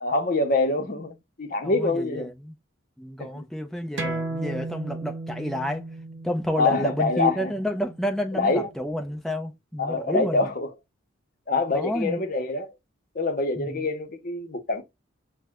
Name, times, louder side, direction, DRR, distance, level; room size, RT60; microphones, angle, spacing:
voice 1, 0.0-2.3 3.2-3.4 6.6-7.5 8.3-8.7 9.8-10.7 11.5-12.7 13.1-14.8, left 3 dB, 45° left, 0.7 m, -25 dB
voice 2, 1.6-2.5 3.0-5.9 6.2-10.5 11.7-12.2 13.6-13.9, equal, ahead, 0.5 m, -30 dB
sound 1, 4.0-9.1, right 2 dB, 60° right, 0.7 m, -35 dB
5.9 x 2.1 x 2.3 m
head